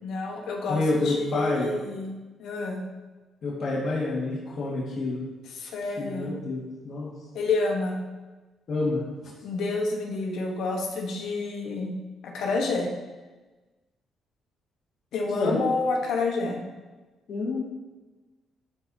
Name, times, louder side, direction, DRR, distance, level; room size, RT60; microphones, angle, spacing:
voice 1, 0.0-2.1 2.4-2.8 5.5-6.3 7.3-8.0 9.4-11.9 12.2-12.9 15.1-16.6, left 3 dB, 80° left, 1 dB, 1.2 m, -29 dB
voice 2, 0.7-1.7 3.4-5.2 6.0-7.1 8.7-9.3 15.3-15.6 17.3-17.6, left 2 dB, 55° left, -6 dB, 1.8 m, -28 dB
12.0 x 4.4 x 2.8 m, 1.2 s
cardioid pair, 90°, 0 cm